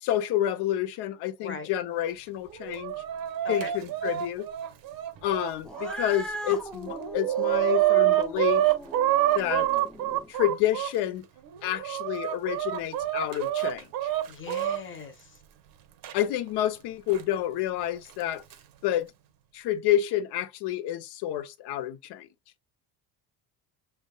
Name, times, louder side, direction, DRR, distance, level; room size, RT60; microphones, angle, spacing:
voice 1, 0.0-2.9 3.5-4.5 5.2-8.6 9.3-9.7 10.3-11.2 11.6-14.1 16.1-18.4 18.8-19.1 19.5-22.3, left 12 dB, 80° left, 0.9 m, -29 dB
voice 2, 1.4-1.7 3.4-3.7 14.3-15.4, left 4 dB, 30° left, 0.9 m, -39 dB
Chicken rooster, 2.5-5.9 6.5-6.6 6.9-10.9 11.5-14.8 16.0-16.1 17.1-17.2 18.2-18.5, right 13 dB, 60° right, 0.9 m, -27 dB
Cat, 5.6-10.3, equal, ahead, 0.5 m, -39 dB
6.4 x 3.5 x 2.3 m
cardioid pair, 165°, 40 cm